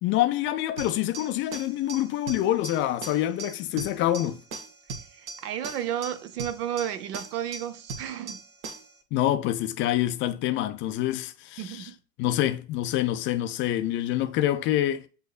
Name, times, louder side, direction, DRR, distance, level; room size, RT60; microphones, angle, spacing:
voice 1, 0.0-4.4 9.1-11.9 12.2-15.0, left 13 dB, 30° left, 0.3 m, -26 dB
sound 1, 0.8-9.0, right 4 dB, 55° right, 1.3 m, -40 dB
voice 2, 5.2-8.4 11.6-11.9, right 10 dB, 75° right, 0.8 m, -32 dB
7.8 x 2.7 x 2.4 m
hypercardioid pair, 90°, 47 cm